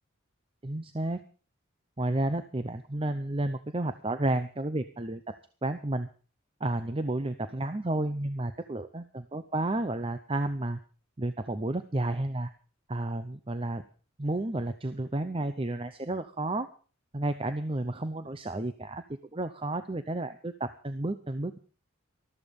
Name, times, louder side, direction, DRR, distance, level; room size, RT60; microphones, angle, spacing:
voice 1, 0.6-1.2 2.0-6.1 6.6-10.8 11.2-12.5 12.9-13.8 14.2-16.7 17.1-19.0 19.3-21.6, right 2 dB, 25° right, 11 dB, 0.6 m, -31 dB
13.5 x 13.5 x 5.2 m, 0.38 s
head